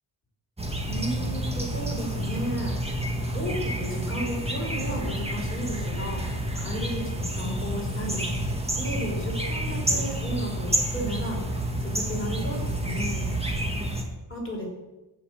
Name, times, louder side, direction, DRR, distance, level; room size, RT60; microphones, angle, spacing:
sound 1, 0.6-14.0, right 1 dB, 10° right, 1.8 m, -29 dB
voice 1, 0.9-3.0 3.3-6.2 6.6-8.2 8.7-13.3 14.3-14.7, equal, 25° left, -2 dB, 5.1 m, -34 dB
14.5 x 6.2 x 8.9 m, 1.1 s
wide cardioid pair, 145°, 48 cm